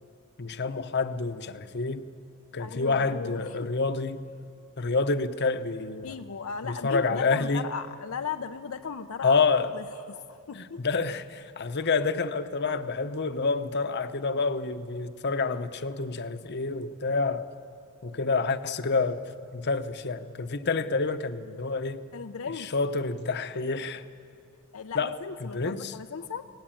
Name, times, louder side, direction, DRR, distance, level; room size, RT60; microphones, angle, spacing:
voice 1, 0.4-2.1 2.5-4.2 4.8-6.1 6.6-7.7 9.2-9.7 10.5-17.5 18.0-22.0 22.7-24.0 24.9-25.2 25.4-25.9, left 4 dB, 50° left, 0.9 m, -28 dB
voice 2, 2.6-3.7 6.0-9.4 9.7-10.8 11.8-11.9 22.1-22.7 24.7-26.5, left 6 dB, 75° left, 0.6 m, -37 dB
24.0 x 17.5 x 9.1 m
head